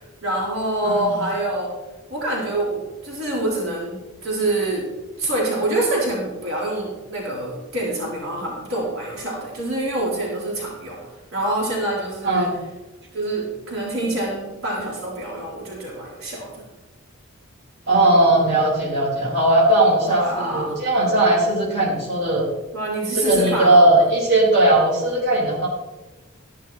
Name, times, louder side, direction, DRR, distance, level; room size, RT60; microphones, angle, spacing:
voice 1, 0.0-1.7 2.1-4.9 5.2-11.0 11.3-12.5 13.1-16.6 20.0-20.7 22.7-24.0, right 1 dB, 75° right, -6 dB, 4.3 m, -26 dB
voice 2, 12.2-12.6 17.9-22.5 23.1-25.7, right 1 dB, 55° right, -6 dB, 4.6 m, -18 dB
14.5 x 11.5 x 3.0 m, 1.1 s
head